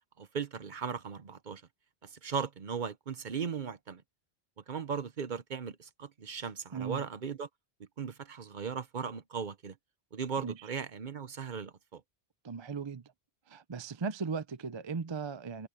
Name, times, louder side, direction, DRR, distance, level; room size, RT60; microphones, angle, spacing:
voice 1, 0.2-1.6 2.0-4.0 4.6-7.5 8.0-9.8 10.1-12.0, right 6 dB, 50° right, 0.9 m, -37 dB
voice 2, 6.7-7.0 10.4-10.7 12.4-13.1 13.5-15.7, right 5 dB, 35° right, 0.6 m, -37 dB
omnidirectional pair, 1.0 m